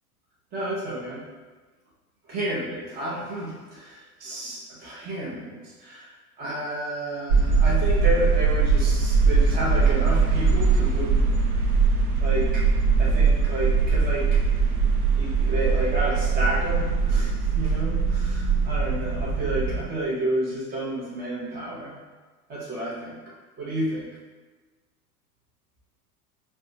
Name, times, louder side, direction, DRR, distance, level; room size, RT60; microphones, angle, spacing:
voice 1, 0.5-1.2 2.3-6.1 6.4-11.4 12.2-12.6 13.0-14.4 15.2-22.0 22.5-23.2 23.6-24.1, right 1 dB, 20° right, -5 dB, 0.6 m, -30 dB
sound 1, 7.3-19.9, right 4 dB, 70° right, 0.6 m, -21 dB
4.2 x 2.2 x 2.7 m, 1.3 s
figure-of-eight pair, 80°, 46 cm